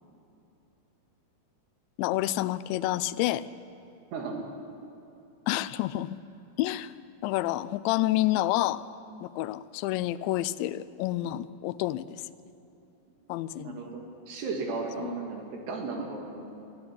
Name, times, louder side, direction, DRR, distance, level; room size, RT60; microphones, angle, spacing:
voice 1, 2.0-3.4 5.5-6.1 6.6-6.9 7.2-8.8 9.2-12.2 13.3-13.8 15.0-15.1, left 15 dB, 85° left, 16 dB, 2.9 m, -29 dB
voice 2, 4.1-4.4 13.6-16.6, right 4 dB, 65° right, 2 dB, 4.5 m, -35 dB
22.5 x 14.5 x 9.8 m, 2.9 s
omnidirectional pair, 5.1 m